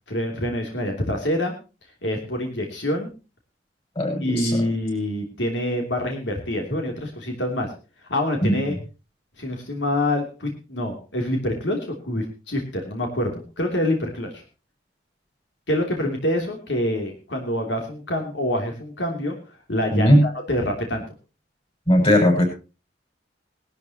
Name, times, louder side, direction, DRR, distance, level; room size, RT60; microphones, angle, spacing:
voice 1, 0.1-1.5 2.0-3.1 4.2-7.7 8.1-8.7 9.4-14.4 15.7-19.4 19.7-21.0, left 1 dB, 85° left, 2 dB, 3.2 m, -26 dB
voice 2, 3.9-4.7 8.4-8.5 19.9-20.2 21.9-22.5, equal, 35° left, 3 dB, 6.7 m, -18 dB
19.5 x 12.5 x 3.0 m, 0.31 s
head